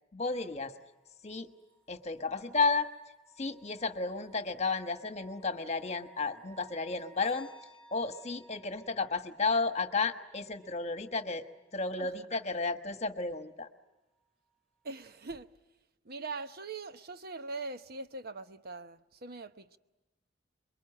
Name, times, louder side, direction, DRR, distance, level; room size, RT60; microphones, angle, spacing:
voice 1, 0.1-0.7 1.2-1.5 1.9-2.9 3.4-7.5 7.9-11.4 11.7-13.7, left 4 dB, 35° left, 1.4 m, -32 dB
sound 1, 0.7-12.7 14.1-14.2, right 1 dB, 5° left, 3.5 m, -60 dB
voice 2, 14.8-15.5 16.0-19.8, right 3 dB, 55° right, 0.9 m, -42 dB
27.0 x 23.0 x 8.7 m
head